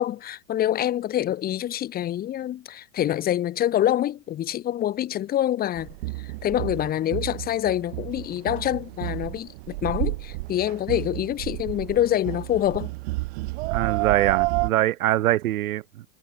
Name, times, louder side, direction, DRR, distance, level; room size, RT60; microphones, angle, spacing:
voice 1, 0.0-5.9 6.2-12.9, left 12 dB, 20° left, 1.5 m, -26 dB
sound 1, 5.7-14.7, right 23 dB, 45° right, 1.5 m, -30 dB
voice 2, 13.7-16.0, right 15 dB, 80° right, 1.0 m, -23 dB
supercardioid pair, 150°, 42 cm